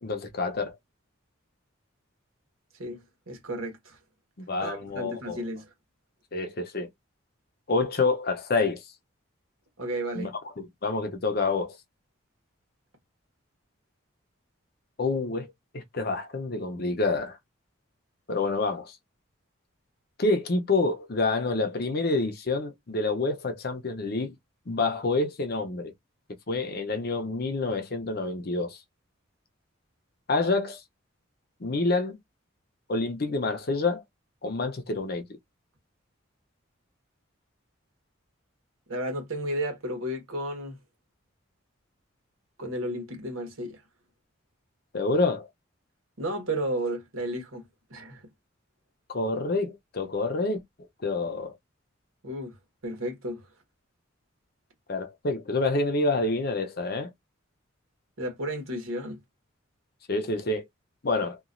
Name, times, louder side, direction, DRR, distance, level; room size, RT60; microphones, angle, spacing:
voice 1, 0.0-0.8 4.5-5.4 6.3-6.9 7.7-8.8 10.1-10.3 10.6-11.8 15.0-15.5 15.7-17.4 18.3-19.0 20.2-24.4 24.7-25.9 26.5-28.8 30.3-30.8 31.6-32.2 32.9-34.0 34.4-35.2 44.9-45.5 49.1-50.6 51.0-51.6 54.9-57.1 60.1-60.6 61.0-61.4, left 3 dB, 50° left, 0.6 m, -27 dB
voice 2, 2.8-4.0 4.6-5.6 9.8-10.3 38.9-40.8 42.6-43.8 46.2-47.6 47.9-48.2 52.2-52.5 52.8-53.4 58.2-59.2, right 1 dB, 90° right, 1.3 m, -33 dB
2.9 x 2.4 x 2.5 m
head